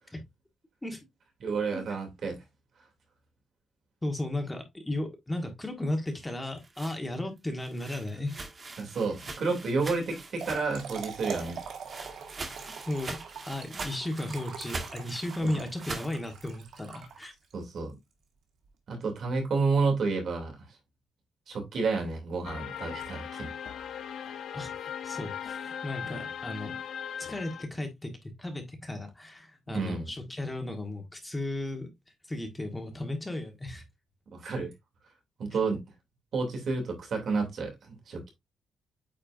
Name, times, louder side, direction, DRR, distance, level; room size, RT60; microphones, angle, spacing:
voice 1, 1.4-2.4 8.8-11.6 15.4-15.6 17.5-17.9 18.9-20.7 21.5-23.5 29.7-30.1 34.3-34.7 35.4-35.8 36.3-38.3, right 4 dB, 55° right, 2.7 m, -30 dB
voice 2, 4.0-8.4 12.8-13.2 13.5-17.3 24.5-26.8 27.2-31.9 32.3-33.8, left 1 dB, 10° left, 1.4 m, -35 dB
sound 1, 6.4-10.9 11.2-16.1, right 3 dB, 30° right, 1.4 m, -42 dB
Trickle dribble / Fill (with liquid), 10.1-17.6, right 6 dB, 75° right, 2.0 m, -43 dB
sound 2, 22.4-27.7, left 8 dB, 75° left, 0.8 m, -38 dB
8.7 x 4.4 x 2.6 m
cardioid pair, 140°, 0 cm